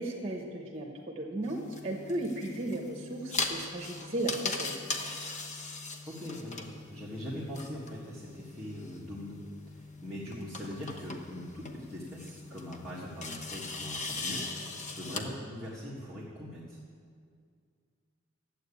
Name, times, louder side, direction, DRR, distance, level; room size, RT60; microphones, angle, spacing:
voice 1, 0.0-4.8, right 1 dB, 30° right, 0 dB, 1.2 m, -35 dB
sound 1, 1.4-15.2, left 3 dB, 35° left, 1.0 m, -40 dB
voice 2, 6.1-9.4 9.7-14.4 14.9-16.8, left 1 dB, ahead, -8 dB, 1.7 m, -41 dB
12.0 x 8.1 x 8.4 m, 2.2 s
head